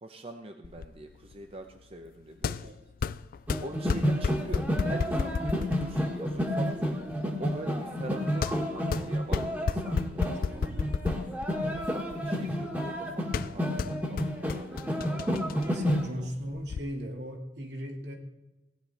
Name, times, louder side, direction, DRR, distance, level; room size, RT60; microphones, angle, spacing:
voice 1, 0.0-2.7 3.0-3.1 3.6-7.0 7.4-10.7 11.7-15.3 16.2-16.3, right 2 dB, 35° right, 5 dB, 0.7 m, -43 dB
sound 1, 0.6-16.8, left 5 dB, 50° left, 0.3 m, -35 dB
sound 2, 3.5-16.1, equal, 10° right, 1.6 m, -30 dB
voice 2, 10.2-11.0 15.5-18.1, equal, 70° right, 1 dB, 2.2 m, -39 dB
16.5 x 9.7 x 4.3 m, 1.1 s
head